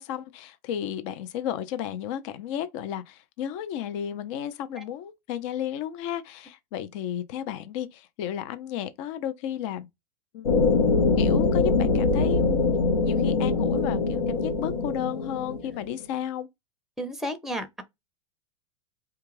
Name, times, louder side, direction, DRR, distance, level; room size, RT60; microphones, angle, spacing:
voice 1, 0.0-9.9 10.3-10.5 11.2-12.7 13.0-16.5, left 10 dB, 55° left, 0.5 m, -33 dB
sound 1, 10.4-15.9, left 4 dB, 85° left, 0.8 m, -23 dB
voice 2, 17.0-17.8, equal, ahead, 0.6 m, -32 dB
3.4 x 2.3 x 3.1 m
hypercardioid pair, 110°, 19 cm